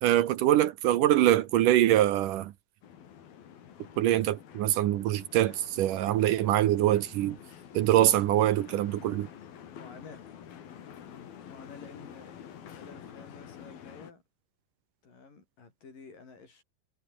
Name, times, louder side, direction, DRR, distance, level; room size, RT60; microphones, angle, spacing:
voice 1, 0.0-2.5 4.0-7.4 7.7-9.3, right 13 dB, 70° right, 2.4 m, -24 dB
sound 1, 2.8-14.1, left 9 dB, 85° left, 4.4 m, -48 dB
voice 2, 9.7-10.3 11.5-14.2 15.0-16.6, left 4 dB, 65° left, 7.9 m, -51 dB
omnidirectional pair, 4.1 m